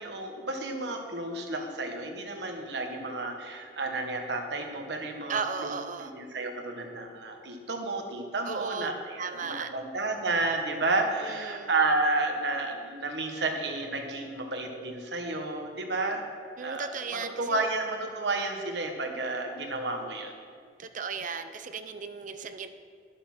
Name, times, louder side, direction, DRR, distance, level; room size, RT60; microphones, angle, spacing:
voice 1, 0.0-16.2 16.6-16.9 17.4-20.3, right 2 dB, 75° right, 3 dB, 1.2 m, -31 dB
voice 2, 5.3-6.1 8.4-8.9 9.2-9.7 11.2-11.7 16.6-17.6 20.8-22.7, right 5 dB, 50° right, 9 dB, 0.6 m, -35 dB
10.5 x 6.4 x 6.1 m, 2.1 s
head